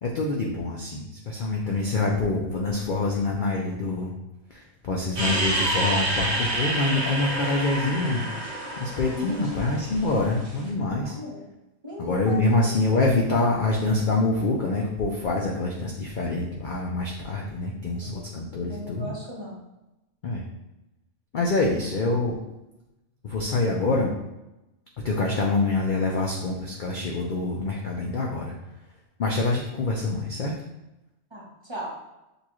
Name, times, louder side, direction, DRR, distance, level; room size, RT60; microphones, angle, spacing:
voice 1, 0.0-4.1 4.5-8.3 8.8-11.2 12.0-19.1 20.2-20.4 21.3-22.4 23.2-24.1 25.0-28.5 29.2-30.5, left 2 dB, 55° left, -2 dB, 0.5 m, -26 dB
sound 1, 5.2-10.6, right 1 dB, 60° right, 1.3 m, -28 dB
voice 2, 9.1-9.6 11.0-11.4 11.8-12.7 18.1-18.2 18.6-19.6 21.7-21.8 31.3-31.9, left 2 dB, 25° right, -6 dB, 0.8 m, -36 dB
6.6 x 2.3 x 3.0 m, 0.97 s
omnidirectional pair, 1.4 m